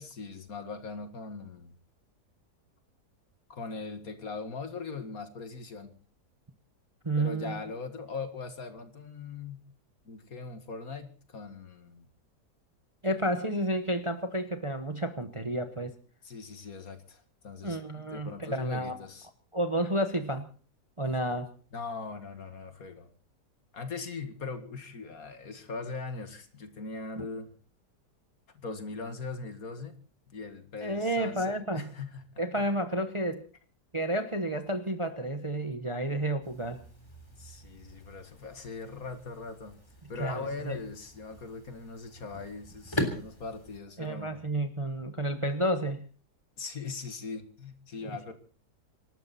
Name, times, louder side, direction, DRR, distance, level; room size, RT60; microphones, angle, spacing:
voice 1, 0.0-1.7 3.5-5.9 7.2-9.7 10.1-12.1 16.2-19.3 21.7-23.1 23.7-27.5 28.5-30.0 30.3-32.7 37.4-39.8 40.1-44.4 46.6-48.3, left 4 dB, 55° left, 8 dB, 2.3 m, -40 dB
voice 2, 7.0-7.6 13.0-15.9 17.6-19.0 19.5-20.5 21.0-21.5 27.2-27.3 30.8-31.9 32.4-33.4 33.9-36.8 40.2-40.4 40.7-40.8 44.0-46.0 48.0-48.1, right 1 dB, 20° right, 8 dB, 0.9 m, -31 dB
sound 1, 36.4-43.8, left 1 dB, 15° left, 3.4 m, -40 dB
26.5 x 12.5 x 4.2 m, 0.39 s
omnidirectional pair, 1.8 m